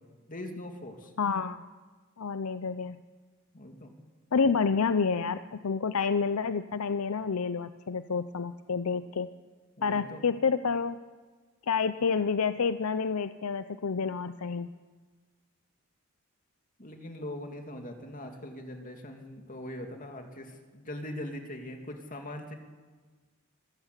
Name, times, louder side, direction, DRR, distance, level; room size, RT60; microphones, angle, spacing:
voice 1, 0.3-1.1 3.5-3.9 9.8-10.2 16.8-22.5, left 1 dB, 40° left, 4 dB, 2.7 m, -41 dB
voice 2, 1.2-1.6 2.2-3.0 4.3-9.3 9.8-11.0 11.7-14.7, left 5 dB, 85° left, 12 dB, 0.6 m, -29 dB
25.5 x 15.0 x 8.2 m, 1.4 s
head